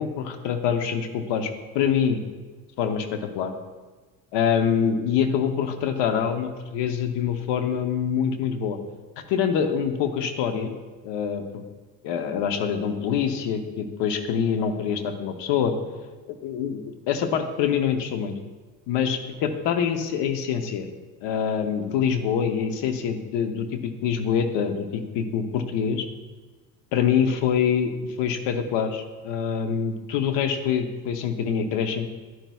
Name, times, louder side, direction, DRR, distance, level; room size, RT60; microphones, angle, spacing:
voice 1, 0.0-2.2 2.8-3.5 4.3-8.8 9.3-10.7 11.0-11.6 12.0-15.8 16.3-18.4 18.9-20.9 21.2-26.1 26.9-27.9 28.2-32.1, left 7 dB, 80° left, 7 dB, 0.9 m, -25 dB
10.5 x 9.2 x 2.3 m, 1.3 s
supercardioid pair, 80°, 42 cm